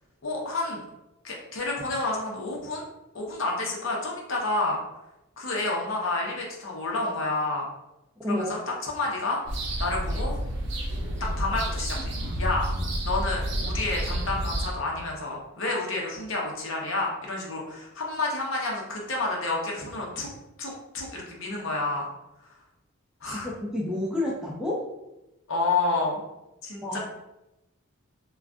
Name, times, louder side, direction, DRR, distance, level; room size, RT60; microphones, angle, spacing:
voice 1, 0.2-0.8 1.2-2.9 3.1-4.8 5.4-7.7 8.3-9.4 9.8-10.3 11.2-12.7 13.0-20.3 20.6-22.1 23.2-23.5 25.5-26.2 26.6-27.0, left 2 dB, 65° left, -2 dB, 0.7 m, -29 dB
voice 2, 8.2-8.5 23.3-24.9 26.8-27.0, left 1 dB, 5° right, -3 dB, 0.3 m, -30 dB
sound 1, 9.5-14.7, equal, 55° right, 0.6 m, -29 dB
2.5 x 2.3 x 3.4 m, 0.94 s
head